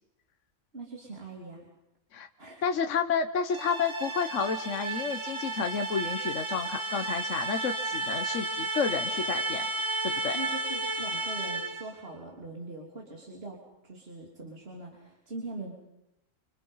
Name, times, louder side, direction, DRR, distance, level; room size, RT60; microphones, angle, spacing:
voice 1, 0.7-1.6 2.4-2.6 10.3-15.7, right 2 dB, 45° right, -2 dB, 3.7 m, -42 dB
voice 2, 2.6-9.7 10.0-10.4, left 6 dB, 65° left, 7 dB, 1.4 m, -30 dB
sound 1, 3.5-11.9, right 2 dB, 65° right, 3.7 m, -33 dB
27.5 x 26.5 x 5.6 m, 0.87 s
omnidirectional pair, 1.4 m